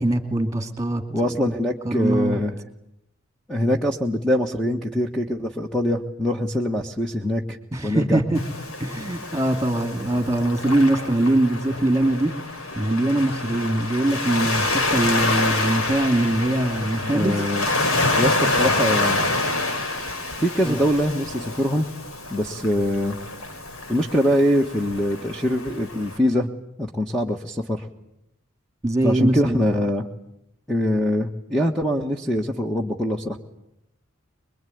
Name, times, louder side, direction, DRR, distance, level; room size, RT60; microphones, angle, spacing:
voice 1, 0.0-1.0 1.4-1.5 1.8-2.4 7.7-8.4 8.8-12.3 12.8-17.4 20.6-20.8 28.8-29.6, right 1 dB, 15° right, 9 dB, 2.6 m, -22 dB
voice 2, 1.1-2.6 3.5-7.6 7.8-8.2 17.1-17.7 18.0-19.2 20.4-21.9 22.3-23.2 23.9-26.5 26.8-27.9 29.0-30.1 30.7-33.4, equal, 5° left, 2 dB, 1.4 m, -23 dB
Waves surf, 8.3-26.2, left 2 dB, 85° left, 4.0 m, -27 dB
26.0 x 22.0 x 9.4 m, 0.80 s
head